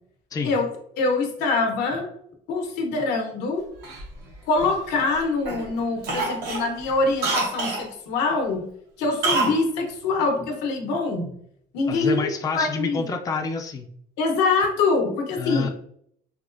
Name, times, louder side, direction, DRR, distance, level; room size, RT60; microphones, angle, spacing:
voice 1, 1.0-2.1 2.5-3.6 4.5-8.6 9.0-11.3 11.7-13.0 14.2-15.7, left 3 dB, 85° left, 2 dB, 0.9 m, -24 dB
Cough, 3.8-5.1 5.5-5.7 6.0-7.9 9.2-9.6 9.9-10.0, right 3 dB, 75° right, 1.1 m, -27 dB
voice 2, 11.9-13.9 15.4-15.7, left 4 dB, 20° left, 3 dB, 0.4 m, -28 dB
3.5 x 2.9 x 2.5 m, 0.68 s
cardioid pair, 110°, 17 cm